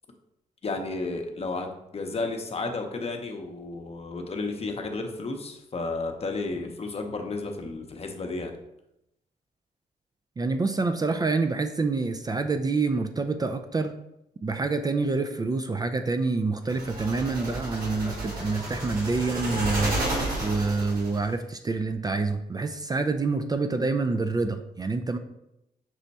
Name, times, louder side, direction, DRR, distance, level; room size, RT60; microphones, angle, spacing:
voice 1, 0.6-8.5, left 3 dB, 40° left, 4 dB, 0.7 m, -32 dB
voice 2, 10.4-13.9 14.4-25.2, right 3 dB, 25° right, 8 dB, 0.3 m, -27 dB
sound 1, 16.7-21.2, right 1 dB, 75° right, 1.5 m, -31 dB
6.0 x 2.1 x 4.0 m, 0.85 s
cardioid pair, 70°, 15 cm